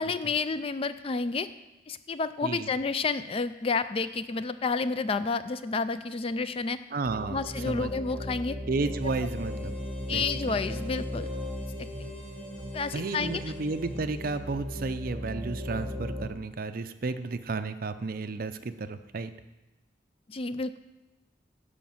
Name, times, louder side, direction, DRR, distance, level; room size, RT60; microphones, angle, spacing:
voice 1, 0.0-1.5 1.9-6.8 7.3-8.6 10.1-11.3 11.8-11.9 12.7-13.4 20.3-20.8, left 4 dB, 30° left, 13 dB, 0.4 m, -30 dB
voice 2, 6.9-7.9 8.7-9.7 10.1-10.2 12.9-19.3, right 3 dB, 50° right, 10 dB, 0.6 m, -32 dB
sound 1, 7.0-16.3, equal, 30° right, 2.4 m, -37 dB
Harmonica, 8.9-14.9, right 1 dB, 5° left, 2.8 m, -54 dB
11.5 x 5.1 x 7.2 m, 1.1 s
head